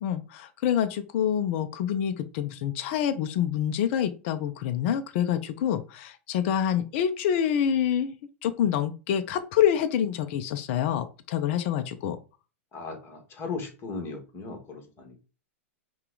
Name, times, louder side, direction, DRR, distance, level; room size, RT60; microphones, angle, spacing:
voice 1, 0.0-12.2, left 9 dB, 55° left, 9 dB, 0.5 m, -27 dB
voice 2, 12.7-15.2, left 4 dB, 30° left, 3 dB, 1.6 m, -37 dB
5.5 x 2.4 x 3.8 m, 0.33 s
hypercardioid pair, 110°, 8 cm